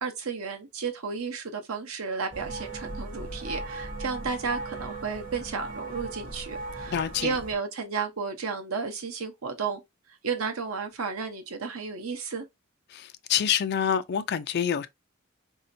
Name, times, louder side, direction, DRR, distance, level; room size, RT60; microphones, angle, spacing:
voice 1, 0.0-7.0 7.2-9.8 10.2-12.5, right 5 dB, 90° right, 0.8 m, -33 dB
sound 1, 2.3-7.6, right 2 dB, 40° right, 1.2 m, -37 dB
voice 2, 6.9-7.4 12.9-14.9, left 8 dB, 50° left, 0.3 m, -27 dB
4.1 x 2.7 x 2.6 m
head